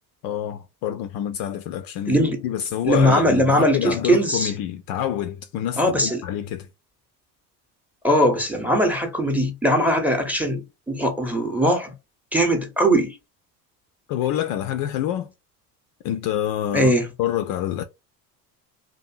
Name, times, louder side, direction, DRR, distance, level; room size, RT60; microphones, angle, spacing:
voice 1, 0.2-6.7 14.1-15.3 16.0-17.8, left 11 dB, 50° left, 0.4 m, -27 dB
voice 2, 2.1-2.4 2.8-4.5 5.8-6.2 8.0-11.9 12.3-13.1 16.7-17.1, equal, 5° right, 0.8 m, -20 dB
2.6 x 2.6 x 2.5 m
hypercardioid pair, 70°, 48 cm